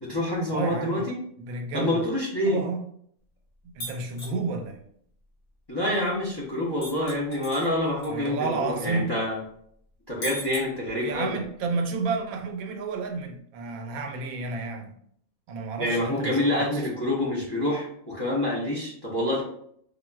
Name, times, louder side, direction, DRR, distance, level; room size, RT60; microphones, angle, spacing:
voice 1, 0.0-1.2 1.7-2.6 5.7-9.4 10.1-11.4 15.8-19.4, left 1 dB, 25° left, -6 dB, 0.5 m, -27 dB
voice 2, 0.5-1.0 1.4-2.0 2.5-2.8 3.6-4.8 8.1-9.1 11.0-14.9 15.5-16.8, right 4 dB, 80° right, 4 dB, 1.0 m, -31 dB
sound 1, 3.8-4.4 6.8-8.1 8.4-8.5 10.2-11.2, equal, 60° left, 1.2 m, -37 dB
3.8 x 2.4 x 2.2 m, 0.66 s
omnidirectional pair, 1.5 m